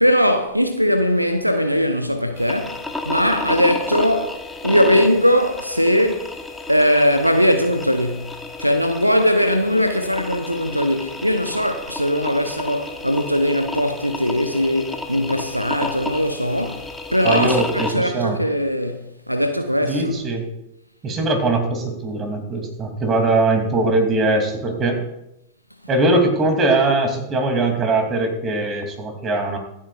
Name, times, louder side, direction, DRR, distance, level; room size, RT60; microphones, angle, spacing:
voice 1, 0.0-6.3 6.7-8.3 8.6-16.8 17.1-20.2, equal, 90° right, 0.8 m, -20 dB
sound 1, 2.4-17.9, left 2 dB, 5° left, 1.2 m, -32 dB
voice 2, 17.2-18.4 19.9-20.4 21.0-25.0 25.9-29.6, right 2 dB, 25° right, 2.9 m, -21 dB
25.0 x 8.6 x 2.5 m
figure-of-eight pair, 90°, 0 cm